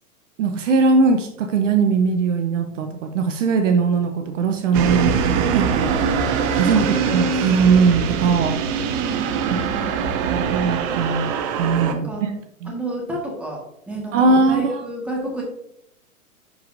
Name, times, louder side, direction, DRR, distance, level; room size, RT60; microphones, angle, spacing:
voice 1, 0.4-5.9 6.5-8.6 9.5-9.6 10.3-11.3 11.6-12.3 12.6-12.7 14.1-14.8, right 4 dB, 55° right, 6 dB, 0.9 m, -20 dB
sound 1, 4.7-11.9, right 6 dB, 25° right, 0.5 m, -23 dB
voice 2, 6.5-7.5 8.9-9.9 11.9-12.3 12.6-15.4, right 2 dB, 5° right, -2 dB, 1.7 m, -29 dB
10.5 x 4.8 x 2.7 m, 0.74 s
hypercardioid pair, 120°, 44 cm